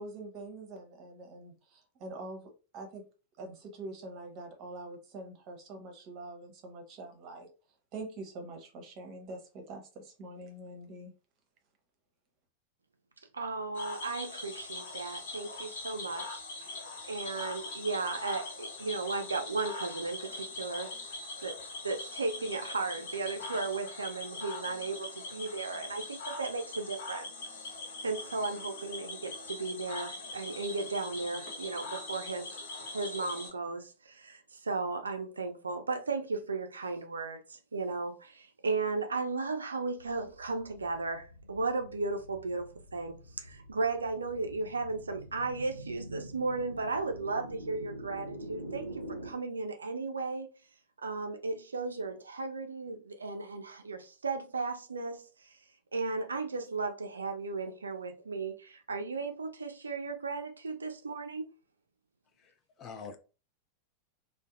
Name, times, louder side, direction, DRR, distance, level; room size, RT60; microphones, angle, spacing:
voice 1, 0.0-3.0 3.4-7.5 7.9-11.1, right 2 dB, 40° right, 0.7 m, -45 dB
voice 2, 13.3-16.4 17.1-20.9 21.4-21.6 21.8-27.3 28.0-32.5 32.9-50.5 51.0-55.5 55.9-61.4, right 3 dB, 75° right, 0.3 m, -35 dB
Cricket / Frog, 13.7-33.5, left 2 dB, 60° left, 0.8 m, -42 dB
sound 1, 40.0-49.3, right 1 dB, 90° left, 0.5 m, -46 dB
voice 3, 62.4-63.2, left 5 dB, 30° left, 0.4 m, -46 dB
2.6 x 2.1 x 2.4 m
figure-of-eight pair, 90°, 0 cm